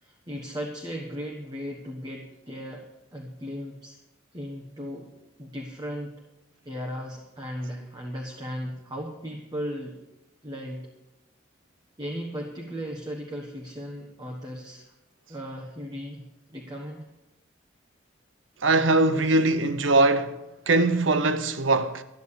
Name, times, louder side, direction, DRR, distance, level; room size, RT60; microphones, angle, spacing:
voice 1, 0.0-4.0 4.3-5.1 5.4-6.1 6.6-10.0 10.4-10.9 12.0-14.9 15.3-17.1, equal, 20° right, 1.3 m, -36 dB
voice 2, 18.6-20.4 20.7-22.0, right 2 dB, 80° right, 0.9 m, -21 dB
13.0 x 9.2 x 7.0 m
head